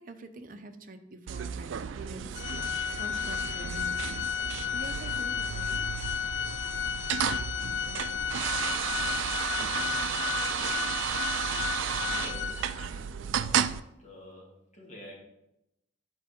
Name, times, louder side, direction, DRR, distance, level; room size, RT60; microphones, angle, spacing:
voice 1, 0.0-2.6 3.0-5.9 12.0-12.6 12.9-13.4, right 2 dB, 45° right, 7 dB, 0.7 m, -46 dB
sound 1, 1.3-13.8, right 8 dB, 80° right, 0.4 m, -33 dB
Organ, 2.4-13.0, left 8 dB, 70° left, 0.4 m, -33 dB
voice 2, 12.1-12.6 12.9-13.1 13.3-13.7 14.0-15.2, left 1 dB, 40° left, -3 dB, 2.4 m, -48 dB
8.1 x 4.7 x 5.2 m, 0.87 s
head